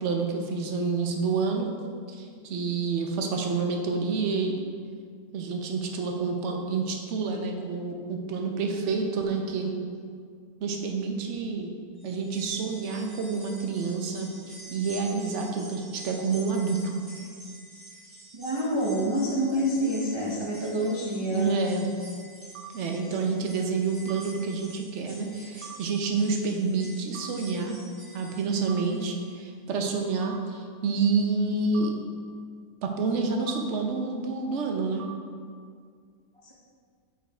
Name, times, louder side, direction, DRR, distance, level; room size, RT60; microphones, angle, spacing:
voice 1, 0.0-1.7 2.1-4.6 5.3-9.7 10.6-11.7 12.0-14.3 14.7-17.0 21.2-21.9 22.7-27.8 28.1-31.9 32.8-35.0, right 4 dB, 55° right, 2 dB, 0.9 m, -28 dB
sound 1, 12.0-29.3 29.7-29.8 30.9-31.0, right 1 dB, 15° right, 1.5 m, -48 dB
voice 2, 18.3-21.5 23.0-23.1, equal, 40° right, -5 dB, 0.4 m, -27 dB
sound 2, 22.5-22.7 24.1-24.2 25.6-25.8 27.1-27.3 28.7-28.8 30.2-30.4 31.7-31.9 33.5-33.6 35.0-35.1, right 13 dB, 85° right, 1.2 m, -41 dB
5.5 x 5.0 x 4.3 m, 2.1 s
omnidirectional pair, 1.7 m